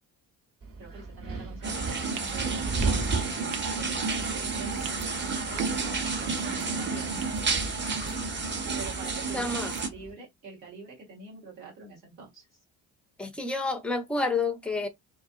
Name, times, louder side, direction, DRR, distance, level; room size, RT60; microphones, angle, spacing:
Wind, 0.6-10.1, right 3 dB, 40° right, 1.3 m, -37 dB
voice 1, 0.8-3.1 3.7-8.1 8.7-12.5, right 3 dB, 85° right, 1.4 m, -45 dB
sound 1, 1.6-9.9, right 4 dB, 20° right, 0.7 m, -31 dB
sound 2, 2.1-2.3 2.8-3.0 3.5-3.6 4.7-5.1 5.6-5.9 6.3-6.7 7.2-7.4 7.9-8.2 8.8-9.1 9.6-9.8, right 8 dB, 70° right, 0.7 m, -43 dB
voice 2, 9.3-9.7 13.2-14.9, left 3 dB, 5° left, 0.3 m, -29 dB
2.5 x 2.3 x 2.5 m
figure-of-eight pair, 50°, 50 cm